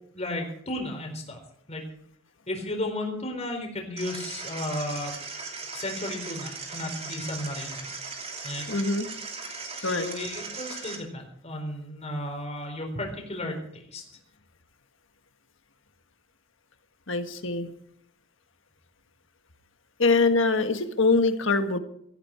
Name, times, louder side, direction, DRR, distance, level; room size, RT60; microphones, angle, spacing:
voice 1, 0.1-1.4 1.7-1.8 2.5-5.2 5.6-7.9 8.4-8.6 9.8-13.6 13.9-14.0, left 1 dB, 35° left, 2 dB, 4.1 m, -34 dB
sound 1, 4.0-11.0, right 4 dB, 30° right, 3.0 m, -38 dB
voice 2, 8.7-9.1 9.8-10.1 17.1-17.7 20.0-21.8, left 3 dB, 70° left, 8 dB, 1.6 m, -23 dB
18.0 x 14.0 x 4.5 m, 0.68 s
head